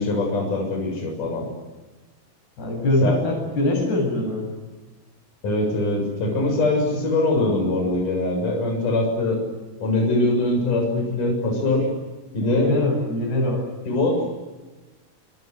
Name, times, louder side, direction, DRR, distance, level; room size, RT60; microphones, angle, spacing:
voice 1, 0.0-1.5 3.0-3.2 5.4-9.4 9.8-11.9 12.3-12.7 13.9-14.2, left 2 dB, 50° left, 1 dB, 8.7 m, -22 dB
voice 2, 2.6-4.5 12.4-13.6, left 1 dB, 75° left, 3 dB, 9.8 m, -23 dB
26.5 x 26.5 x 8.2 m, 1.2 s
omnidirectional pair, 4.7 m